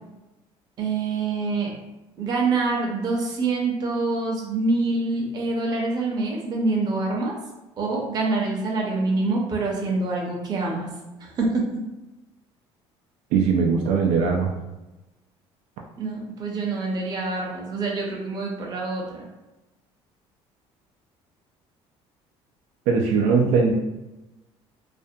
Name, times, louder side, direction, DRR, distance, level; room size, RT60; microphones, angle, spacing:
voice 1, 0.8-1.7 2.2-7.4 7.8-10.9 11.2-11.6 16.0-19.3, right 3 dB, 40° right, -1 dB, 0.6 m, -26 dB
voice 2, 13.3-14.5 22.9-23.7, right 5 dB, 80° right, 0 dB, 0.4 m, -20 dB
2.5 x 2.1 x 2.6 m, 1.0 s
cardioid pair, 130°, 11 cm